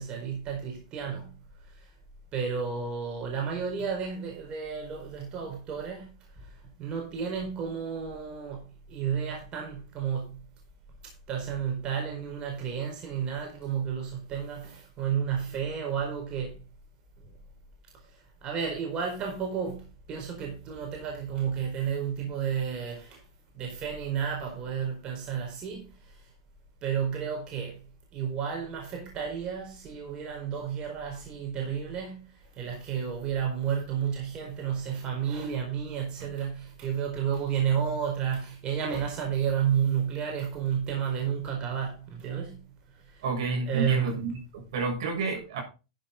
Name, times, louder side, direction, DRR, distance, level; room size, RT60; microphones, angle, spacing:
voice 1, 0.0-1.3 2.3-6.1 6.8-10.5 11.3-16.6 18.4-23.2 23.5-25.9 26.8-27.9 28.1-32.3 32.6-42.6 43.1-43.2 43.7-44.2, right 7 dB, 30° right, 4.5 m, -31 dB
voice 2, 43.2-45.6, right 4 dB, 65° right, 7.1 m, -30 dB
12.0 x 9.3 x 3.9 m
hypercardioid pair, 120°, 3 cm